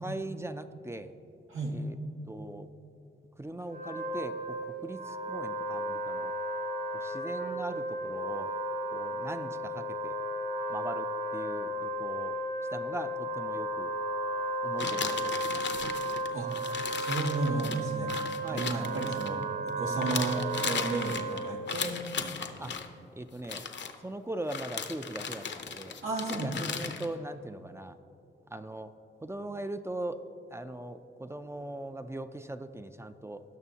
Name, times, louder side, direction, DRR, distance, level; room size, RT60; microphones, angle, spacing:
voice 1, 0.0-1.1 1.7-2.0 2.3-2.7 3.4-6.3 6.9-8.5 8.9-10.2 10.7-12.4 12.7-13.9 14.6-15.9 18.4-18.7 22.6-22.7 23.2-23.6 24.0-26.0 26.4-28.0 28.5-28.9 29.2-30.2 30.5-33.4, right 1 dB, 15° right, 9 dB, 0.4 m, -40 dB
Wind instrument woodwind instrument, 3.6-21.8, right 1 dB, 45° right, 1.5 m, -34 dB
sound 1, 14.8-19.7 20.0-22.9 23.4-23.9 24.5-27.1, left 6 dB, 60° left, 0.7 m, -36 dB
voice 2, 16.9-18.1 18.5-22.7 26.0-26.7, right 2 dB, 85° right, -2 dB, 1.7 m, -33 dB
18.0 x 6.1 x 2.8 m, 2.8 s
cardioid pair, 90°, 21 cm